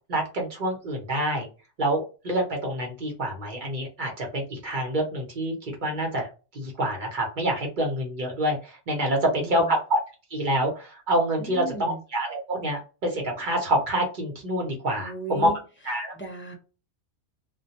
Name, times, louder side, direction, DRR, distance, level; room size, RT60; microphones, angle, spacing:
voice 1, 0.1-1.5 1.8-6.3 6.5-10.0 10.3-15.5 15.8-16.1, right 1 dB, 45° right, 1 dB, 0.8 m, -27 dB
voice 2, 9.1-9.8 11.4-12.0 15.0-15.6 16.1-16.5, right 2 dB, 15° left, -2 dB, 0.4 m, -36 dB
2.2 x 2.2 x 2.8 m, 0.32 s
omnidirectional pair, 1.3 m